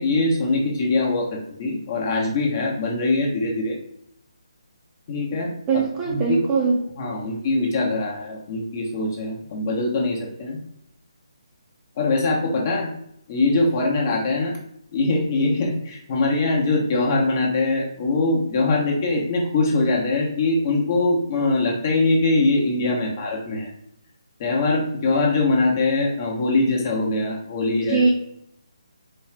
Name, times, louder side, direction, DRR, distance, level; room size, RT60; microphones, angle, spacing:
voice 1, 0.0-3.8 5.1-6.4 7.0-10.6 12.0-12.9 13.3-14.5 14.9-23.7 24.4-28.0, left 2 dB, 35° left, -1 dB, 0.9 m, -22 dB
voice 2, 5.7-6.8 27.7-28.1, right 4 dB, 15° right, -3 dB, 0.6 m, -21 dB
4.2 x 2.3 x 3.3 m, 0.73 s
figure-of-eight pair, 150°, 3 cm